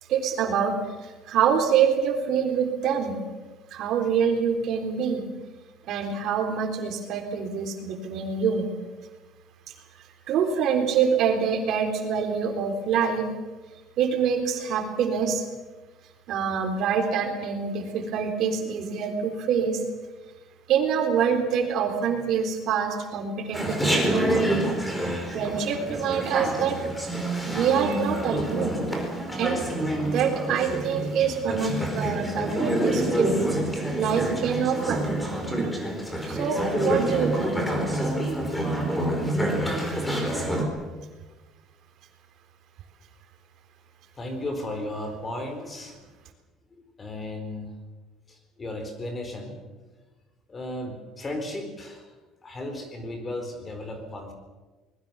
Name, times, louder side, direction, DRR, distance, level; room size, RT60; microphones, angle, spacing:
voice 1, 0.1-0.8 1.0-3.2 3.7-5.2 5.9-8.7 10.3-13.3 14.0-15.4 16.3-19.8 20.7-24.5 25.3-26.8 27.5-28.8 29.4-29.6 30.0-33.3 34.0-35.0 35.6-35.7 36.3-38.1, right 7 dB, 55° right, 4 dB, 3.8 m, -25 dB
Chatter, 23.5-40.6, right 1 dB, 5° left, 4.5 m, -27 dB
voice 2, 44.2-46.0 47.0-47.7 48.3-49.6 50.5-52.1 52.4-54.3, left 1 dB, 20° left, 6 dB, 4.3 m, -35 dB
24.5 x 21.0 x 7.1 m, 1.2 s
cardioid pair, 160°, 0 cm